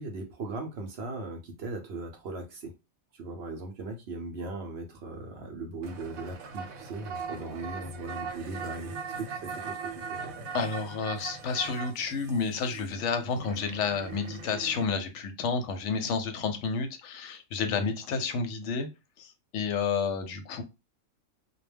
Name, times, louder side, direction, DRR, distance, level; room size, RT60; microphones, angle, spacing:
voice 1, 0.0-2.7 3.1-10.3 17.6-17.9, right 2 dB, 60° right, 0.7 m, -39 dB
sound 1, 5.8-14.9, right 5 dB, 85° right, 1.0 m, -40 dB
voice 2, 10.5-18.9 19.2-20.6, left 5 dB, 70° left, 0.8 m, -30 dB
2.2 x 2.1 x 3.2 m
omnidirectional pair, 1.4 m